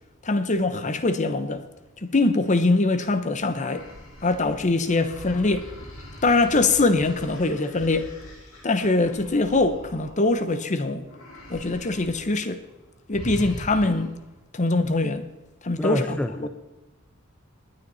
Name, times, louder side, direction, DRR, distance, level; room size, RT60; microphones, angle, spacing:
voice 1, 0.2-1.6 2.0-3.8 4.2-5.7 6.2-8.1 8.6-11.0 11.5-12.6 13.1-14.1 14.5-15.2 15.6-16.5, left 2 dB, 35° left, 1.0 m, -23 dB
sound 1, 3.5-10.7 11.1-12.3 12.6-12.8 13.1-14.2, equal, 80° left, 3.8 m, -42 dB
voice 2, 15.8-16.5, left 1 dB, 5° left, 0.5 m, -28 dB
19.5 x 9.7 x 4.2 m
head